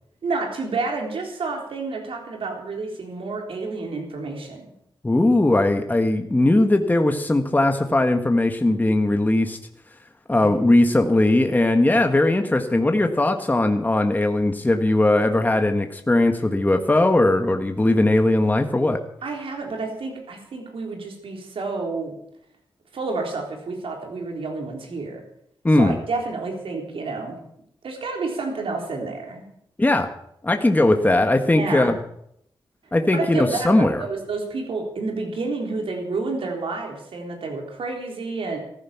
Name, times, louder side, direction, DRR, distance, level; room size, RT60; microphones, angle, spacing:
voice 1, 0.2-4.6 10.3-10.8 19.2-22.1 22.9-25.2 25.8-27.4 27.8-29.4 31.5-31.9 33.1-38.6, right 3 dB, 85° right, 2 dB, 3.9 m, -29 dB
voice 2, 5.0-9.6 10.3-19.0 25.6-26.0 29.8-30.1 30.4-32.0 32.9-34.0, left 2 dB, 20° left, 5 dB, 1.4 m, -19 dB
14.5 x 14.5 x 5.9 m, 0.72 s
cardioid pair, 80°, 9 cm